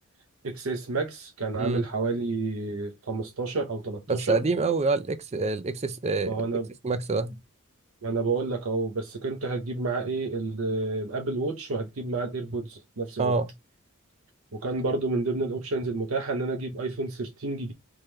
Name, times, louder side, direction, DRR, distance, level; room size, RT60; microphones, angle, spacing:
voice 1, 0.4-4.4 6.2-6.7 8.0-13.4 14.5-17.7, right 3 dB, 65° right, 0.7 m, -30 dB
voice 2, 4.1-6.4 6.8-7.4 13.2-13.5, right 3 dB, 30° right, 0.4 m, -26 dB
3.6 x 3.0 x 3.2 m
head